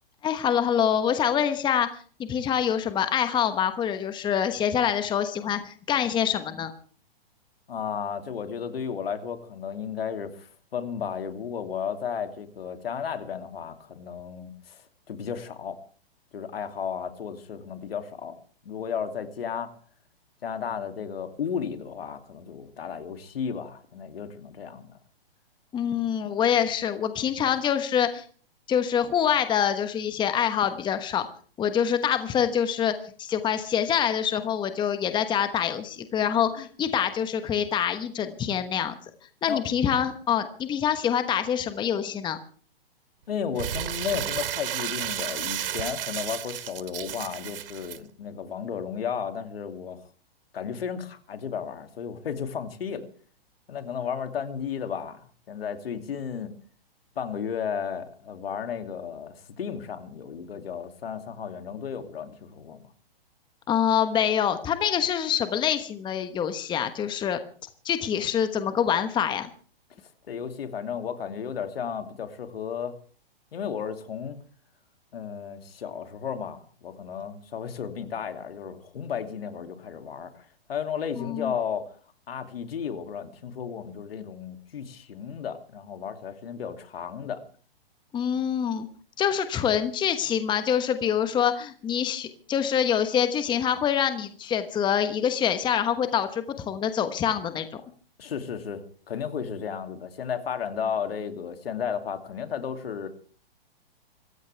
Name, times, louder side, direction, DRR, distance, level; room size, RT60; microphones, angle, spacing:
voice 1, 0.2-1.9 2.2-6.7 25.7-28.2 28.7-31.3 31.6-38.9 39.4-42.4 63.7-67.4 67.8-69.5 81.2-81.5 88.1-88.9 89.2-97.6, left 8 dB, 15° left, 10 dB, 1.2 m, -25 dB
voice 2, 7.7-14.8 15.1-15.8 16.3-18.4 18.6-19.7 20.4-25.0 39.5-39.6 43.3-50.0 50.5-53.0 53.7-56.5 57.2-62.8 70.3-72.9 73.5-74.4 75.1-81.9 82.3-87.4 98.2-103.1, left 7 dB, 70° left, 7 dB, 2.8 m, -33 dB
Crumpling crinkling, 43.6-48.0, right 10 dB, 65° right, 1.1 m, -32 dB
26.0 x 15.0 x 3.4 m, 0.43 s
hypercardioid pair, 130°, 30 cm